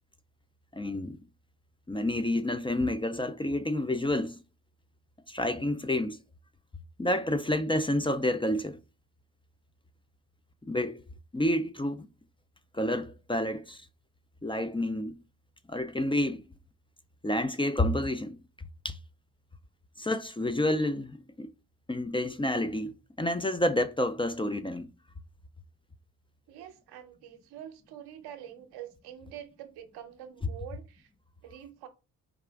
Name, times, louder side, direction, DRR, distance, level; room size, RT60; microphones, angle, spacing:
voice 1, 0.7-1.2 1.9-4.4 5.3-6.2 7.0-8.8 10.6-11.0 11.3-12.1 12.7-13.8 14.4-15.1 15.7-16.4 17.2-18.4 18.8-19.0 20.0-21.5 21.9-24.9, left 1 dB, 15° left, 0.4 m, -29 dB
voice 2, 26.5-31.1 31.4-31.9, right 10 dB, 85° right, 0.7 m, -46 dB
4.7 x 2.5 x 3.4 m
supercardioid pair, 45°, 38 cm